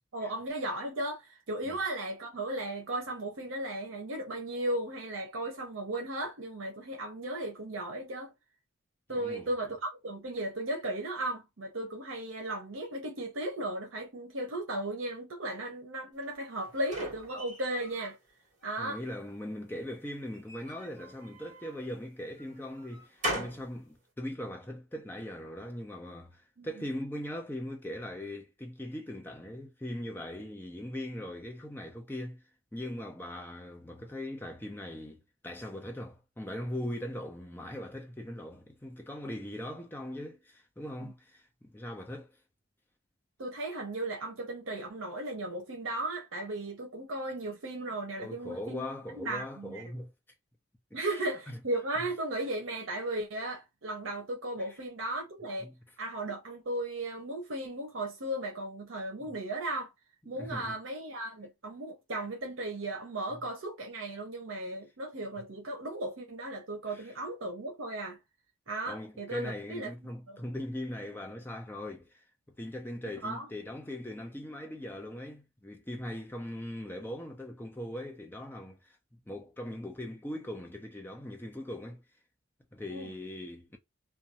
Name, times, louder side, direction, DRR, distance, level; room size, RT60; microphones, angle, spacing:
voice 1, 0.1-8.3 9.1-18.2 18.6-19.0 26.6-26.7 41.0-41.1 43.4-49.9 50.9-55.7 56.0-59.9 60.2-68.2 68.7-70.4 73.2-73.5 82.9-83.1, right 1 dB, 75° right, 0.7 m, -36 dB
voice 2, 9.1-9.5 18.8-32.4 32.7-42.3 48.2-50.1 55.6-55.7 59.2-59.3 60.4-60.7 63.3-63.4 66.9-67.1 68.9-72.2 72.6-79.0 79.3-82.0 82.7-83.8, left 1 dB, 10° left, 0.5 m, -40 dB
sound 1, 16.2-18.1 18.6-19.3 20.3-21.8 22.4-23.7, right 1 dB, 35° right, 1.2 m, -40 dB
2.5 x 2.2 x 2.8 m
head